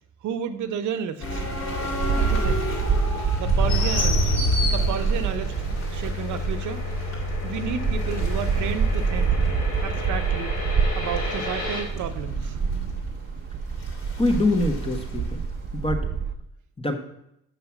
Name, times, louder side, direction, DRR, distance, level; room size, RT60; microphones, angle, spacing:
voice 1, 0.2-1.4 2.0-2.6 3.4-5.5 5.9-6.8 7.4-9.3 9.8-10.6 10.9-12.6, right 7 dB, 75° right, 9 dB, 0.7 m, -32 dB
sound 1, 1.2-15.0, left 2 dB, 55° left, 2.5 m, -30 dB
sound 2, 1.3-16.3, right 5 dB, 40° right, 0.6 m, -26 dB
sound 3, 5.0-11.8, left 2 dB, 85° left, 3.5 m, -36 dB
voice 2, 14.1-15.4 15.7-16.1 16.8-16.9, left 2 dB, 20° left, 5 dB, 1.3 m, -24 dB
6.2 x 5.7 x 7.0 m, 0.81 s
cardioid pair, 90°, 30 cm